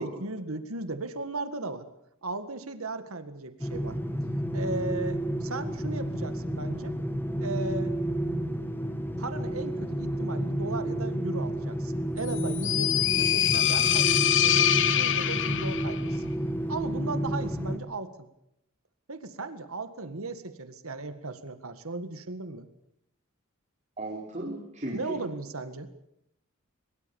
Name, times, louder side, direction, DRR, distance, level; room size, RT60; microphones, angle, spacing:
voice 1, 0.0-1.9 2.2-4.0 4.5-7.0 7.4-8.0 9.2-14.7 15.0-16.2 16.7-18.3 19.1-22.7 24.9-25.9, right 2 dB, 70° right, 10 dB, 1.9 m, -36 dB
sound 1, 3.6-17.8, right 1 dB, 10° left, 2.2 m, -31 dB
sound 2, 12.2-16.0, left 11 dB, 60° left, 1.3 m, -24 dB
voice 2, 24.0-25.2, right 1 dB, 35° right, -2 dB, 4.4 m, -35 dB
23.0 x 22.0 x 7.2 m, 0.80 s
head